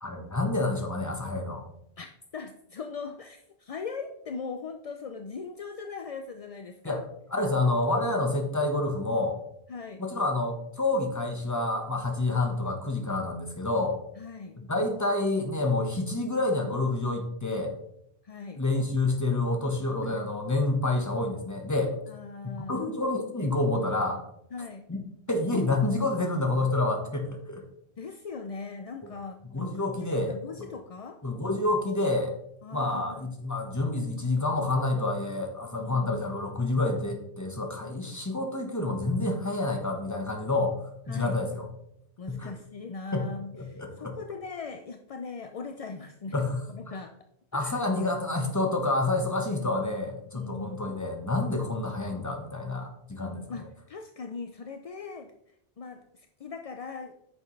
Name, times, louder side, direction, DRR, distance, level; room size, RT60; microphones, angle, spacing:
voice 1, 0.0-1.6 6.8-7.0 7.3-9.4 10.0-14.0 14.6-17.7 18.6-21.9 22.4-24.2 24.9-25.0 25.3-27.6 29.5-30.7 31.2-32.3 32.7-40.8 41.1-41.7 42.3-42.5 43.1-43.2 43.5-44.1 46.3-46.6 47.5-53.4, left 2 dB, 15° left, 3 dB, 1.2 m, -28 dB
voice 2, 2.3-7.0 9.7-10.0 14.2-14.6 18.2-18.6 20.0-20.2 22.1-22.9 24.5-24.9 28.0-31.2 32.6-33.3 35.8-36.3 41.1-41.4 42.2-46.4 46.7-47.1 47.5-47.8 50.3-50.8 53.1-55.3 55.8-57.2, left 4 dB, 50° left, 6 dB, 0.4 m, -40 dB
9.4 x 6.5 x 3.2 m, 0.75 s
omnidirectional pair, 1.1 m